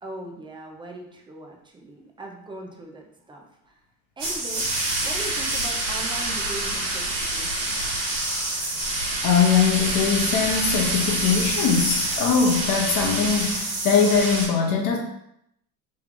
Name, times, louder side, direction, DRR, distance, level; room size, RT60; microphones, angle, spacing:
voice 1, 0.0-3.8 4.2-4.7 5.0-7.9, right 2 dB, 10° right, 1 dB, 0.4 m, -40 dB
sound 1, 4.2-14.5, right 2 dB, 85° right, 1.3 m, -27 dB
voice 2, 9.2-15.0, left 6 dB, 45° left, 0 dB, 0.8 m, -21 dB
3.2 x 2.3 x 3.6 m, 0.76 s
supercardioid pair, 90°, 47 cm